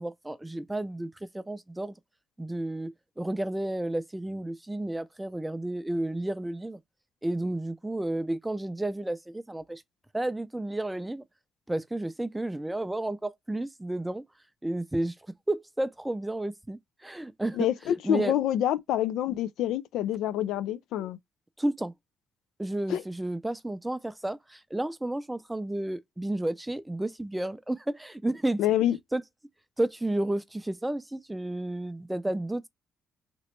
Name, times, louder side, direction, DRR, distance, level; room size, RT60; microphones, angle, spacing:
voice 1, 0.0-2.0 2.4-6.8 7.2-9.8 10.1-11.2 11.7-14.2 14.6-15.1 15.5-17.7 18.0-18.3 21.6-21.9 22.6-28.6 29.1-29.2 29.8-32.7, right 1 dB, 10° right, 0.4 m, -31 dB
voice 2, 17.6-21.2 22.9-23.0 28.6-29.0, left 11 dB, 85° left, 0.3 m, -27 dB
3.0 x 2.9 x 3.1 m
cardioid pair, 90°, 0 cm